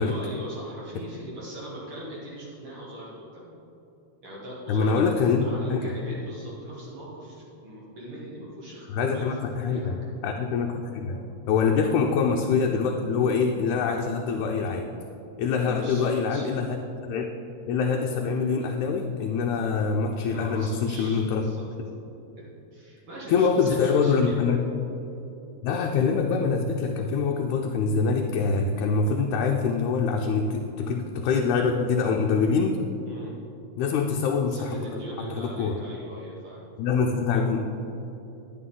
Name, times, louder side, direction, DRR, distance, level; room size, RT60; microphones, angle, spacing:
voice 1, 0.0-3.6 4.2-5.0 5.4-8.9 9.1-9.4 9.6-10.0 11.8-11.9 15.5-16.5 20.2-21.7 22.4-24.5 33.1-33.3 34.4-36.7, right 1 dB, 50° right, -6 dB, 2.2 m, -40 dB
voice 2, 4.7-5.9 8.9-10.0 10.2-14.9 15.4-16.8 17.1-17.3 17.7-21.4 23.3-24.6 25.6-32.8 33.8-34.8 35.2-35.8 36.8-37.6, left 5 dB, 80° left, 2 dB, 2.0 m, -24 dB
11.5 x 8.5 x 3.8 m, 2.9 s
omnidirectional pair, 3.4 m